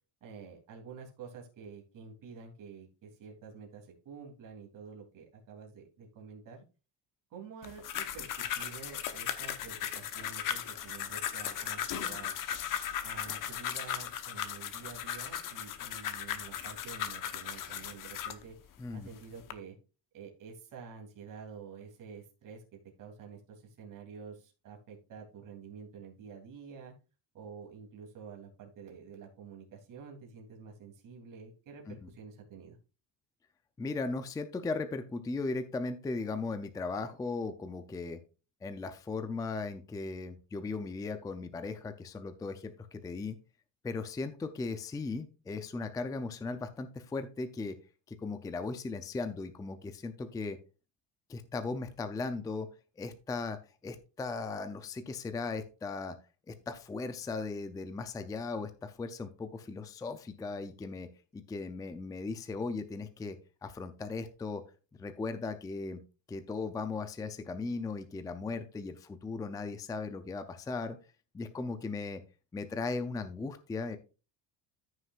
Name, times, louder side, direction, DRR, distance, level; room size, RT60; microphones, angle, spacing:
voice 1, 0.2-6.6 7.3-12.3 13.0-18.6 18.9-19.8 20.1-26.9 27.3-32.8, right 6 dB, 45° right, 1 dB, 3.0 m, -49 dB
sound 1, 7.6-18.4 19.1-19.5, left 9 dB, 45° left, 1.0 m, -37 dB
voice 2, 33.8-38.2 38.6-43.4 43.8-47.8 48.1-50.6 51.3-52.7 53.0-56.2 56.5-61.1 61.3-64.6 65.0-66.0 66.3-71.0 71.3-72.2 72.5-74.0, left 3 dB, 10° left, 9 dB, 0.4 m, -37 dB
14.0 x 6.4 x 2.4 m, 0.32 s
cardioid pair, 165°, 45 cm